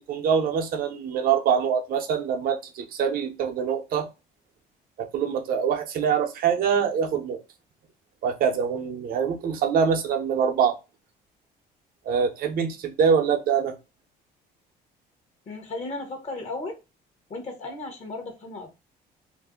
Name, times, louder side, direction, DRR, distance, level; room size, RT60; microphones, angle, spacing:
voice 1, 0.0-4.1 5.0-7.4 8.2-10.8 12.0-13.8, right 7 dB, 60° right, 0.7 m, -24 dB
voice 2, 15.5-16.8 17.3-18.7, left 2 dB, 40° left, 0.9 m, -35 dB
2.6 x 2.1 x 3.5 m
cardioid pair, 110°, 17 cm